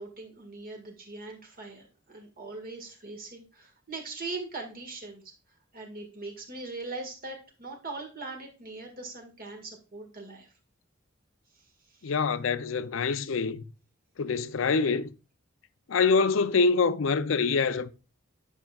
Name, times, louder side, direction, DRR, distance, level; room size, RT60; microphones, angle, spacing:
voice 1, 0.0-5.2 5.7-10.5 11.5-12.1, right 3 dB, 45° right, 1.7 m, -41 dB
voice 2, 12.0-13.6 14.2-15.1 15.9-17.9, left 4 dB, 70° left, 0.5 m, -25 dB
10.5 x 5.9 x 2.4 m
head